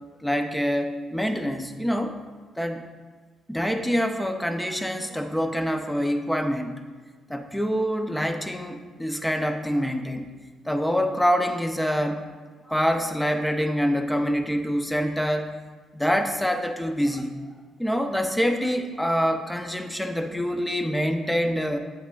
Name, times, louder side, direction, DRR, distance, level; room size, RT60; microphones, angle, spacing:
voice 1, 0.2-2.2 2.6-2.8 3.5-6.7 7.3-10.3 10.7-12.3 12.7-15.5 16.0-17.3 17.8-21.8, equal, 5° left, 6 dB, 0.6 m, -25 dB
7.9 x 6.3 x 2.4 m, 1.4 s
cardioid pair, 90°, 0 cm